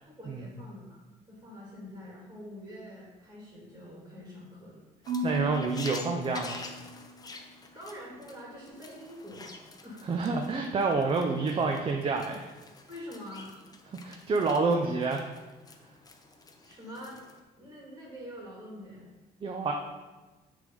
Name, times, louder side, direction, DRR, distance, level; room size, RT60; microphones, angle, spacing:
voice 1, 0.1-4.8 7.7-10.4 12.9-13.6 16.6-17.2 17.6-19.1, equal, 15° right, -5 dB, 2.2 m, -45 dB
sound 1, 5.0-17.4, left 3 dB, 20° left, 0.7 m, -48 dB
Marimba xylophone / Wood, 5.1-7.3, right 1 dB, 70° right, 1.5 m, -36 dB
voice 2, 5.2-6.6 10.0-12.5 14.0-15.3 19.4-19.7, right 4 dB, 30° right, 2 dB, 0.6 m, -28 dB
6.5 x 3.4 x 5.3 m, 1.2 s
cardioid pair, 110°, 17 cm